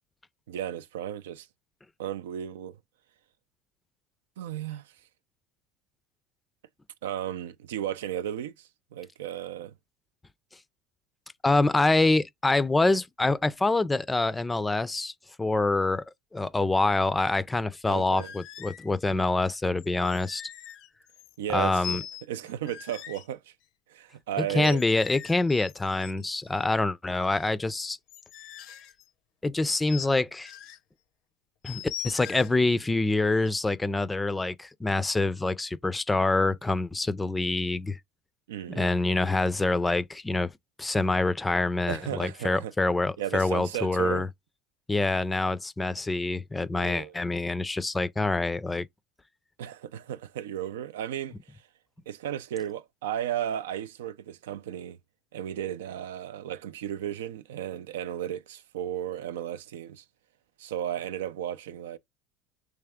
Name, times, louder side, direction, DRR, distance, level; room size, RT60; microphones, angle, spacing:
voice 1, 0.5-1.5 2.0-2.8 4.4-4.9 7.0-9.7 17.9-18.3 21.4-22.0 22.3-23.5 23.9-24.8 38.5-38.9 41.9-42.7 43.2-44.3 46.7-47.1 49.6-51.4 52.1-55.0 55.3-60.0 60.6-62.0, right 11 dB, 90° right, 0.3 m, -34 dB
voice 2, 11.4-15.1 15.4-16.0 16.3-20.4 21.5-22.0 24.4-28.0 29.4-30.5 31.6-38.0 38.7-40.5 40.8-44.3 44.9-48.9, left 2 dB, 15° left, 0.4 m, -26 dB
sound 1, 18.2-18.9 19.8-21.5 21.8-23.3 24.5-26.6 27.1-29.1 29.9-30.1 30.4-30.8 31.6-32.6 33.3-33.6, left 10 dB, 65° left, 0.6 m, -42 dB
3.3 x 3.3 x 3.5 m
supercardioid pair, 95°, 0 cm